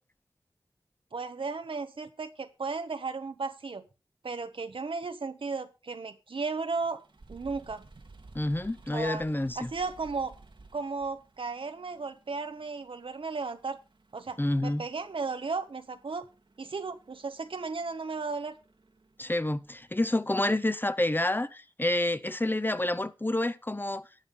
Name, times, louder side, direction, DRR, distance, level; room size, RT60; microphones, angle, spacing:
voice 1, 1.1-3.8 4.2-7.0 7.3-7.8 8.9-9.2 9.6-10.4 10.7-13.8 14.1-16.3 16.6-18.6, right 4 dB, 85° right, 1.0 m, -35 dB
sound 1, 6.7-20.1, right 3 dB, 70° right, 1.5 m, -56 dB
voice 2, 8.3-9.7 14.4-14.8 19.2-24.0, left 1 dB, 25° left, 0.7 m, -28 dB
11.5 x 7.1 x 5.3 m
wide cardioid pair, 45°, 9 cm